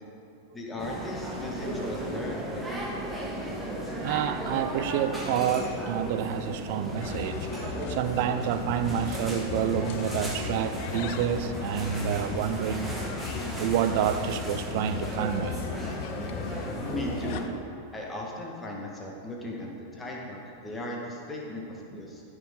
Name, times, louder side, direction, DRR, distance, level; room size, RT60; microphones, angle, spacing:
voice 1, 0.5-2.7 16.8-17.5 17.9-22.2, left 1 dB, 15° left, -2 dB, 1.7 m, -37 dB
sound 1, 0.8-17.5, right 1 dB, 5° right, 1.6 m, -35 dB
voice 2, 4.0-13.3 13.5-15.7, right 9 dB, 50° right, 11 dB, 0.5 m, -29 dB
sound 2, 7.0-17.4, left 8 dB, 50° left, 0.5 m, -37 dB
14.0 x 6.2 x 3.9 m, 2.7 s
figure-of-eight pair, 90°, 0 cm